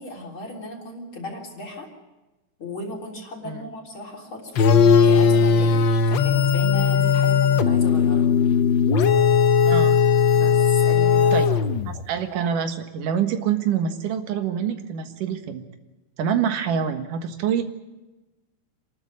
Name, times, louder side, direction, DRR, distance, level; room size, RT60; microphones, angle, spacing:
voice 1, 0.0-1.9 2.6-8.4 10.3-11.5, left 1 dB, 40° left, 0 dB, 4.2 m, -35 dB
sound 1, 4.6-12.0, left 6 dB, 90° left, 1.0 m, -18 dB
voice 2, 9.7-10.0 11.3-11.6 11.9-15.6 16.2-17.6, right 8 dB, 90° right, 7 dB, 3.1 m, -26 dB
27.5 x 12.5 x 9.5 m, 1.1 s
omnidirectional pair, 3.6 m